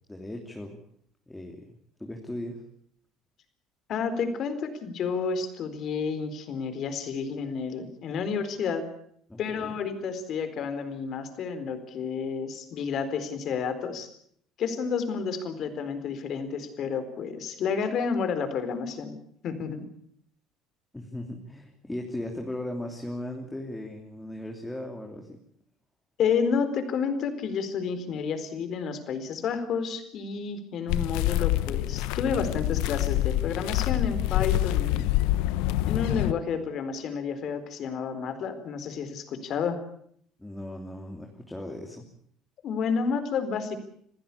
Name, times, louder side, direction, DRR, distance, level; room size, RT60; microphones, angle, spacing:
voice 1, 0.1-0.8 1.3-1.7 2.0-2.6 9.3-9.8 20.9-25.4 40.4-42.0, left 1 dB, 10° left, 2 dB, 3.1 m, -37 dB
voice 2, 3.9-8.8 9.4-14.1 14.6-19.1 19.4-19.9 26.2-35.1 35.9-39.8 42.6-43.8, left 6 dB, 50° left, 10 dB, 4.2 m, -30 dB
sound 1, 30.9-36.3, left 15 dB, 85° left, 1.0 m, -26 dB
27.0 x 15.5 x 8.5 m, 0.66 s
cardioid pair, 110°, 0 cm